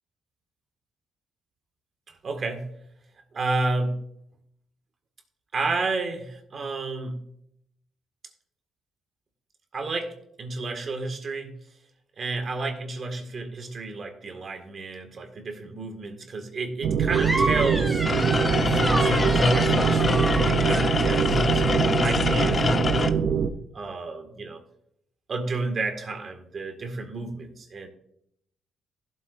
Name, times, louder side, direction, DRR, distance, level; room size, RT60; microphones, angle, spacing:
voice 1, 2.2-2.7 3.3-4.0 5.5-7.2 9.7-11.6 12.2-18.0 18.6-23.2 23.7-24.6 25.3-27.9, right 3 dB, 45° right, 5 dB, 1.8 m, -31 dB
sound 1, 16.8-23.5, right 7 dB, 70° right, 0.8 m, -24 dB
sound 2, 17.1-21.5, right 1 dB, 5° right, 2.5 m, -31 dB
sound 3, 18.0-23.1, left 4 dB, 40° left, 0.8 m, -25 dB
15.0 x 7.9 x 2.6 m, 0.72 s
cardioid pair, 90°, 0 cm